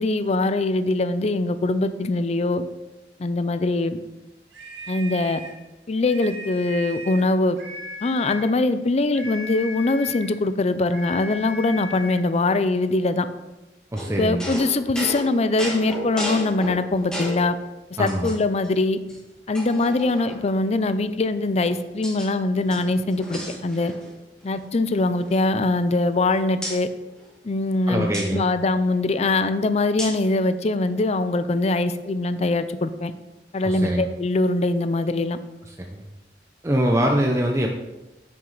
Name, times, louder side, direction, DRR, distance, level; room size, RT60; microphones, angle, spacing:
voice 1, 0.0-2.6 3.2-4.0 4.9-5.4 5.9-7.6 8.0-13.3 14.2-17.6 18.0-19.0 19.5-23.9 24.4-26.9 27.4-33.1 33.5-35.4, left 2 dB, 40° left, 12 dB, 0.5 m, -22 dB
sound 1, 4.5-5.6 6.0-7.3 7.6-8.5 9.1-10.4 10.9-12.2, left 1 dB, 80° right, 1.7 m, -37 dB
voice 2, 13.9-14.5 18.0-18.3 27.9-28.5 33.6-34.1 35.8-36.0 36.6-37.7, equal, 15° right, 1 dB, 0.6 m, -23 dB
sound 2, 14.0-17.5 18.1-18.7 19.1-19.2 19.5-20.6 21.4-22.3 22.6-24.2 24.4-24.6 24.9-26.2 26.6-26.8 28.1-28.3 30.0-30.3, left 1 dB, 5° left, 1.6 m, -34 dB
9.0 x 6.2 x 3.9 m, 1.0 s
head